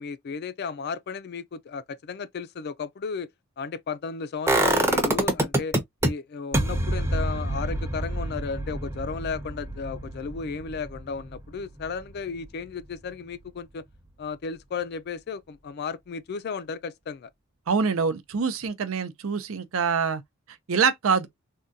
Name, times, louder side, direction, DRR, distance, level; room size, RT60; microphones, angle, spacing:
voice 1, 0.0-3.3 3.6-5.8 6.0-13.8 14.2-17.3, left 5 dB, 50° left, 0.4 m, -34 dB
sound 1, 4.5-6.1 6.5-12.4 12.7-12.8, right 1 dB, 15° right, 0.6 m, -26 dB
voice 2, 17.7-20.2 20.7-21.3, right 5 dB, 85° right, 0.6 m, -25 dB
3.6 x 2.2 x 2.6 m
head